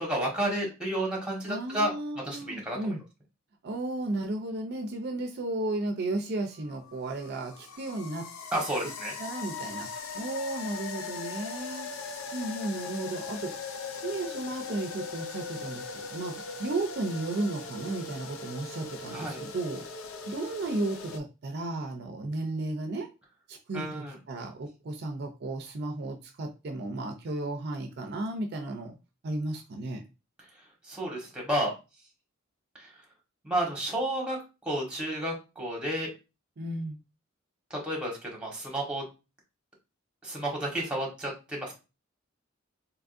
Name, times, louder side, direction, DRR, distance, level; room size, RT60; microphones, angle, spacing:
voice 1, 0.0-1.9 2.2-3.0 8.5-9.1 19.1-19.4 23.7-24.2 30.9-31.7 32.7-32.9 33.4-36.1 37.7-39.0 40.2-41.7, right 1 dB, 5° right, -2 dB, 1.2 m, -31 dB
voice 2, 1.5-3.0 3.6-8.3 9.2-11.9 12.3-13.5 14.0-19.9 20.3-23.1 23.5-28.9 29.2-30.0 36.6-37.0, right 2 dB, 55° right, 5 dB, 0.5 m, -34 dB
sound 1, 6.5-21.2, left 5 dB, 80° left, 0.5 m, -40 dB
3.6 x 3.0 x 2.5 m, 0.29 s
head